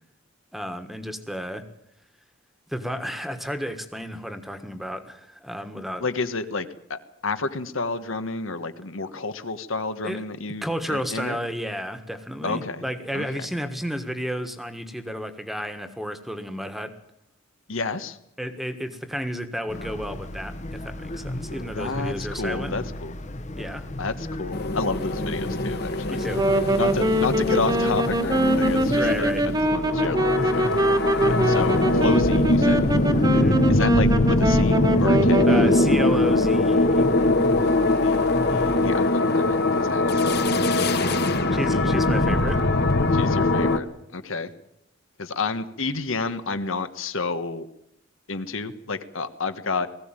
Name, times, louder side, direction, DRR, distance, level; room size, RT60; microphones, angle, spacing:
voice 1, 0.5-1.7 2.7-6.0 10.0-10.2 10.6-16.9 18.4-22.9 23.6-23.9 26.1-26.4 28.9-29.4 33.3-33.6 35.5-37.1 41.0-41.2 41.5-42.7, equal, ahead, 8 dB, 1.5 m, -32 dB
voice 2, 6.0-11.4 12.4-12.9 13.1-13.5 17.7-18.2 21.7-23.1 24.0-29.3 29.7-30.7 31.2-32.9 33.7-35.5 38.0-40.4 41.5-42.1 43.1-43.9 44.1-44.5 45.2-47.7 48.3-49.9, left 3 dB, 80° left, 10 dB, 1.4 m, -30 dB
sound 1, 19.7-39.1, left 1 dB, 35° left, 1.1 m, -34 dB
sound 2, 24.5-43.8, left 2 dB, 55° left, 1.4 m, -22 dB
Wind instrument woodwind instrument, 26.2-35.9, right 1 dB, 20° right, 1.3 m, -24 dB
19.5 x 15.5 x 9.0 m, 0.78 s
head